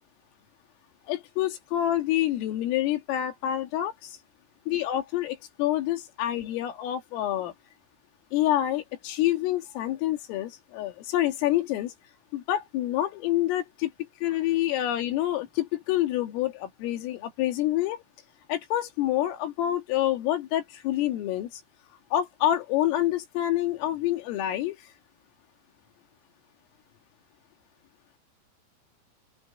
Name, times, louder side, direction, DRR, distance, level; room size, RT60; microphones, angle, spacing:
voice 1, 1.1-4.2 4.7-7.5 8.3-11.9 12.3-13.9 14.2-18.0 18.5-21.5 22.1-24.8, left 13 dB, 85° left, 4.8 m, -27 dB
open air
omnidirectional pair, 5.8 m